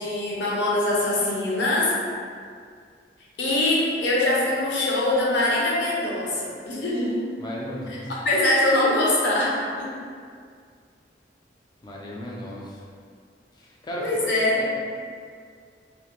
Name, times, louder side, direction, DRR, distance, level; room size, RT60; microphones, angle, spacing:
voice 1, 0.0-1.9 3.4-7.1 8.2-9.9 14.0-14.6, left 1 dB, 75° left, -5 dB, 0.6 m, -23 dB
voice 2, 7.4-8.1 11.8-12.9 13.5-14.2 14.5-14.8, equal, 25° left, -4 dB, 0.3 m, -35 dB
2.3 x 2.1 x 2.8 m, 2.1 s
head